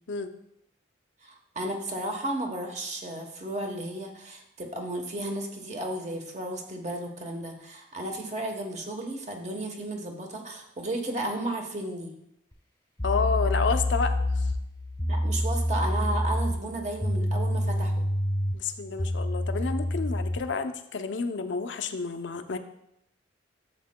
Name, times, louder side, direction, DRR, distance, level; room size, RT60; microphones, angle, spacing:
voice 1, 1.2-12.1 15.1-18.1, right 1 dB, 35° right, 3 dB, 1.0 m, -34 dB
sound 1, 12.5-12.6 13.0-20.5, left 1 dB, 20° left, 0.8 m, -28 dB
voice 2, 13.0-14.5 18.5-22.6, left 4 dB, 70° left, 8 dB, 0.6 m, -30 dB
11.0 x 7.4 x 2.2 m, 0.79 s
head